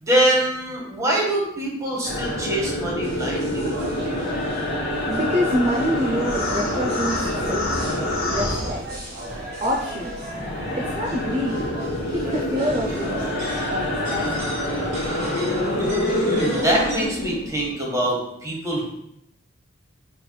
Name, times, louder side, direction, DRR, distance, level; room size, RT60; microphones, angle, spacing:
voice 1, 0.0-3.8 16.2-18.9, right 1 dB, 15° right, -3 dB, 1.1 m, -24 dB
sound 1, 2.0-9.4 9.7-17.7, left 1 dB, 80° left, 1.2 m, -26 dB
sound 2, 3.0-17.1, right 1 dB, 50° right, 1.4 m, -34 dB
voice 2, 5.1-8.8 9.6-10.3 10.7-11.7 12.1-14.6, equal, 35° right, -2 dB, 0.4 m, -27 dB
5.5 x 3.2 x 2.2 m, 0.77 s
head